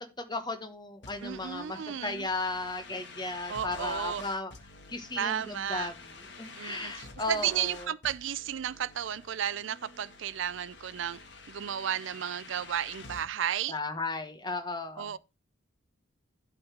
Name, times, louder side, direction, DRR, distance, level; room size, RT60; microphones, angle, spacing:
voice 1, 0.0-4.5 4.9-5.9 6.4-7.9 13.7-15.1, left 2 dB, 20° left, 1.2 m, -35 dB
sound 1, 1.0-13.3, left 3 dB, 55° left, 1.5 m, -49 dB
voice 2, 1.2-2.3 3.5-4.3 5.2-5.9 6.6-11.2 11.5-13.8 15.0-15.2, right 9 dB, 65° right, 0.4 m, -33 dB
11.5 x 3.9 x 5.9 m
head